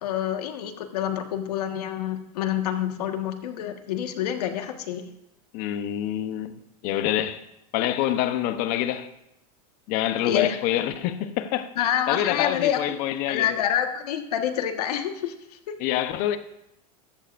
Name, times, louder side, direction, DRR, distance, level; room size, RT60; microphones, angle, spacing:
voice 1, 0.0-5.1 10.2-10.6 11.8-13.0 13.3-15.7, left 10 dB, 90° left, 1.5 m, -27 dB
voice 2, 5.5-7.4 7.7-9.1 9.9-13.6 15.8-16.4, left 12 dB, 45° left, 0.8 m, -26 dB
14.5 x 13.0 x 2.6 m
supercardioid pair, 155°, 19 cm